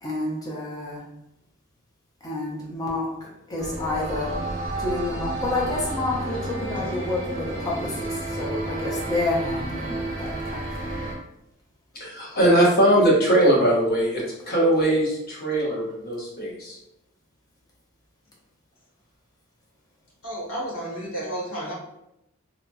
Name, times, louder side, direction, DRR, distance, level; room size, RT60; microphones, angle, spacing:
voice 1, 0.0-1.0 2.2-4.3 4.8-10.9, left 2 dB, 20° left, -4 dB, 0.7 m, -29 dB
sound 1, 3.6-11.1, right 2 dB, 45° right, 0.8 m, -31 dB
voice 2, 12.0-16.7, right 1 dB, 45° left, -4 dB, 0.9 m, -20 dB
voice 3, 20.2-21.7, right 1 dB, 75° left, -6 dB, 1.2 m, -32 dB
2.8 x 2.7 x 2.3 m, 0.83 s
head